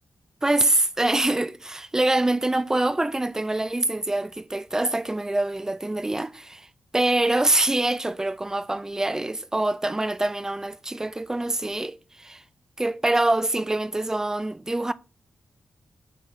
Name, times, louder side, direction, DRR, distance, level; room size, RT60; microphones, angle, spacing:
voice 1, 0.4-6.7 6.9-12.4 12.8-14.9, right 2 dB, 15° right, 0.4 m, -25 dB
8.4 x 3.8 x 4.1 m
wide cardioid pair, 115°, 4 cm